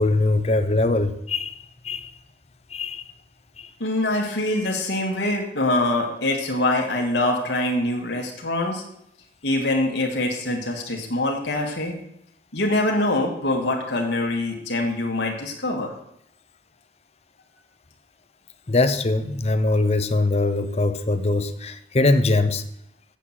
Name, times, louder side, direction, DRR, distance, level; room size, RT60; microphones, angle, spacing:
voice 1, 0.0-2.1 2.7-3.1 3.6-3.7 18.7-22.6, left 2 dB, 35° left, 11 dB, 0.7 m, -22 dB
voice 2, 3.8-8.8 9.4-11.9 12.5-15.9, left 1 dB, 75° left, 0 dB, 2.0 m, -24 dB
8.2 x 6.1 x 7.5 m, 0.74 s
head